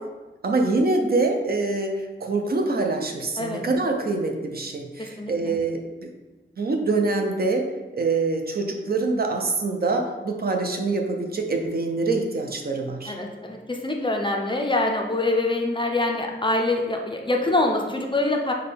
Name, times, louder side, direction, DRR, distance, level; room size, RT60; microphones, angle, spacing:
voice 1, 0.4-6.1 6.6-13.2, right 3 dB, 50° right, 2 dB, 0.5 m, -25 dB
voice 2, 5.0-5.6 13.1-18.5, left 2 dB, 25° left, 2 dB, 0.4 m, -25 dB
5.7 x 2.2 x 3.4 m, 1.1 s
wide cardioid pair, 115°, 21 cm